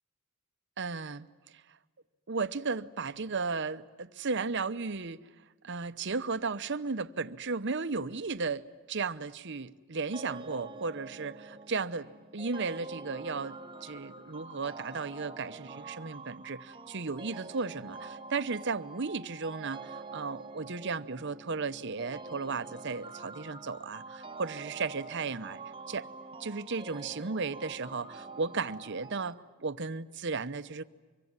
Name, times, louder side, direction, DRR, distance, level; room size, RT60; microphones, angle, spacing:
voice 1, 0.8-1.3 1.5-1.6 2.3-5.2 5.6-25.6 25.9-26.1 26.4-30.8, right 4 dB, 55° right, 0.9 m, -35 dB
sound 1, 10.1-29.3, right 3 dB, 25° right, 1.1 m, -46 dB
25.5 x 24.0 x 9.7 m
head